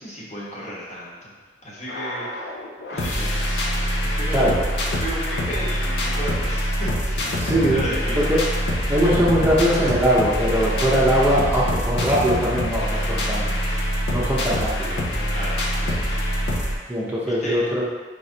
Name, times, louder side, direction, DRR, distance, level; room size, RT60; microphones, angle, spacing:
voice 1, 0.0-1.3 1.6-2.5 2.9-3.3 4.2-7.3 7.6-8.2 15.3-16.0 17.3-17.6, equal, 40° left, -6 dB, 1.1 m, -33 dB
sound 1, 1.9-16.8, equal, 75° left, 0.6 m, -24 dB
voice 2, 4.3-4.6 7.4-7.9 8.2-8.4 8.9-13.6 14.1-15.0 16.9-17.8, equal, 10° right, -7 dB, 0.6 m, -21 dB
4.8 x 3.1 x 2.7 m, 1.4 s
head